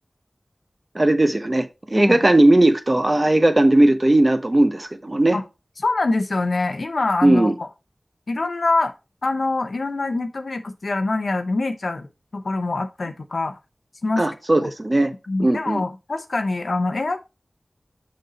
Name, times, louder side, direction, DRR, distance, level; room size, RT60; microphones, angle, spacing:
voice 1, 0.9-5.4 7.2-7.6 14.2-15.1 15.4-15.8, right 1 dB, 35° right, 0.9 m, -17 dB
voice 2, 5.8-7.7 8.3-8.9 9.2-13.6 14.0-14.2 14.6-14.7 15.3-17.2, left 2 dB, 80° left, 0.7 m, -24 dB
6.6 x 5.4 x 4.1 m
wide cardioid pair, 50°, 0 cm